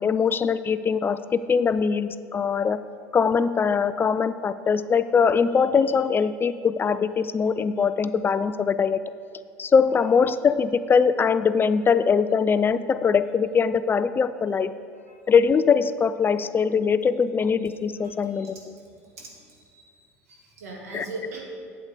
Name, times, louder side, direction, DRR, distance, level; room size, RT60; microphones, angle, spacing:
voice 1, 0.0-2.8 3.1-9.0 9.6-14.7 15.3-18.7 20.9-21.1, left 6 dB, 25° left, 13 dB, 0.3 m, -22 dB
voice 2, 20.3-21.4, right 2 dB, 85° right, -1 dB, 1.8 m, -38 dB
8.0 x 8.0 x 4.9 m, 2.3 s
hypercardioid pair, 75°, 8 cm